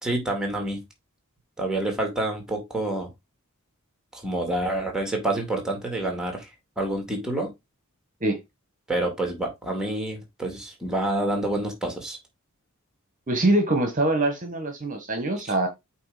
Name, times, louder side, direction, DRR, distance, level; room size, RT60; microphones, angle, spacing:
voice 1, 0.0-0.8 1.6-3.1 4.1-7.5 8.9-12.2 15.4-15.5, right 1 dB, 5° right, 2.3 m, -28 dB
voice 2, 13.3-15.7, right 2 dB, 35° right, 1.4 m, -23 dB
8.3 x 2.9 x 5.0 m
head